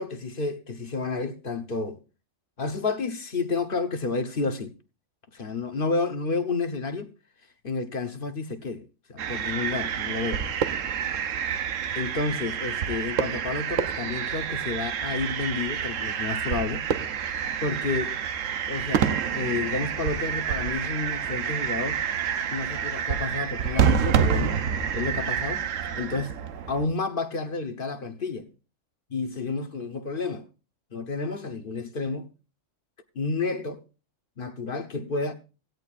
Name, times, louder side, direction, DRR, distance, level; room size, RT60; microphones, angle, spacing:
voice 1, 0.0-2.0 2.6-4.7 5.3-7.1 7.6-10.5 12.0-16.8 17.6-18.2 18.7-19.1 19.3-22.0 22.5-24.6 24.9-25.6 25.9-26.3 26.7-28.5 29.1-30.5 30.9-32.3 33.1-33.8 34.4-35.3, left 3 dB, 45° left, 1.1 m, -30 dB
sound 1, 9.2-26.9, right 8 dB, 80° right, 1.1 m, -28 dB
17.0 x 15.5 x 2.5 m
omnidirectional pair, 1.3 m